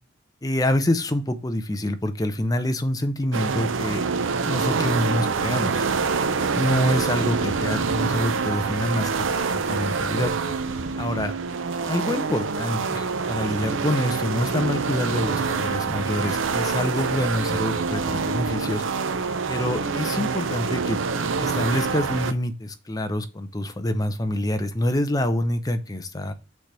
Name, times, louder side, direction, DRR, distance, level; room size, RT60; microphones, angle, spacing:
voice 1, 0.4-4.0 4.5-5.8 6.5-9.2 9.5-10.3 11.0-11.3 11.9-18.8 19.5-21.0 21.4-26.3, left 1 dB, 20° left, 8 dB, 0.7 m, -26 dB
sound 1, 3.3-22.3, right 5 dB, 90° right, 0.6 m, -26 dB
6.3 x 3.4 x 5.5 m, 0.30 s
head